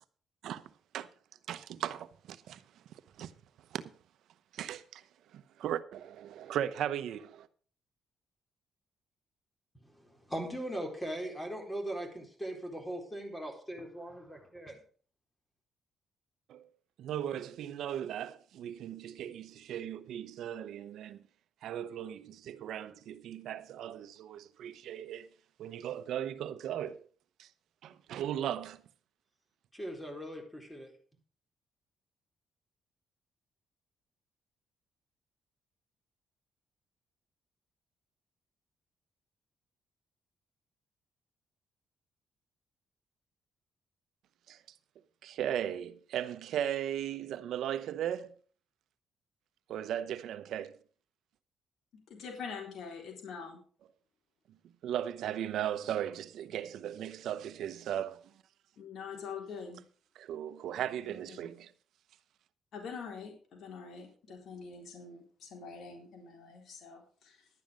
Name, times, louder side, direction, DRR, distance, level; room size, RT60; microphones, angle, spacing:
voice 1, 0.4-1.1 1.5-2.6 2.9-3.3 3.7-3.8 4.5-5.0 5.3-7.5 16.5-16.7 17.0-21.2 21.6-25.3 25.6-27.1 27.4-27.5 27.8-28.8 44.5-44.6 45.2-48.4 49.7-50.8 54.8-58.2 60.2-61.7 63.9-64.0, right 10 dB, 75° right, 0.9 m, -37 dB
voice 2, 9.8-14.8 29.7-30.9, right 1 dB, 10° left, 4.1 m, -40 dB
voice 3, 52.1-53.6 58.8-59.8 61.0-61.5 62.7-67.5, left 5 dB, 65° left, 3.8 m, -45 dB
12.0 x 9.4 x 5.1 m
cardioid pair, 90°, 0 cm